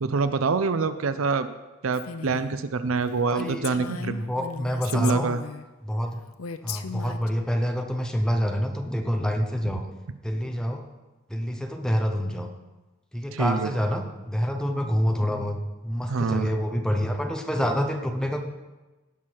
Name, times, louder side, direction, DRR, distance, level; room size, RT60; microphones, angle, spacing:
voice 1, 0.0-1.5 1.8-4.2 4.9-5.4 13.3-13.7 16.1-16.5, right 4 dB, 70° right, 12 dB, 0.6 m, -25 dB
Female speech woman speaking, 1.9-2.5 3.0-3.1 3.4-5.7 6.4-7.3, left 5 dB, 90° left, 0.6 m, -37 dB
voice 2, 3.3-3.6 4.0-5.3 5.8-6.2 6.6-9.8 10.2-10.8 11.3-12.5 13.1-18.4, equal, 5° left, 4 dB, 0.9 m, -27 dB
17.0 x 5.8 x 4.7 m, 1.1 s
head